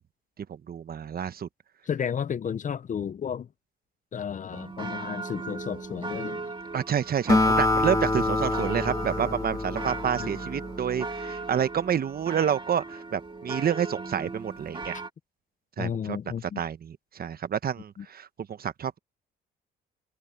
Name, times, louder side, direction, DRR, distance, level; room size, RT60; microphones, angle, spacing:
voice 1, 0.5-1.5 6.7-14.9 15.8-16.2 16.4-19.0, right 8 dB, 50° right, 1.1 m, -29 dB
voice 2, 1.9-3.5 4.1-6.5 10.2-10.3 15.8-16.6 18.0-18.1, left 8 dB, 40° left, 0.6 m, -32 dB
sound 1, 4.5-15.1, right 3 dB, 25° right, 2.0 m, -38 dB
Acoustic guitar, 7.3-10.9, left 2 dB, 15° left, 1.7 m, -26 dB
cardioid pair, 90°, 20 cm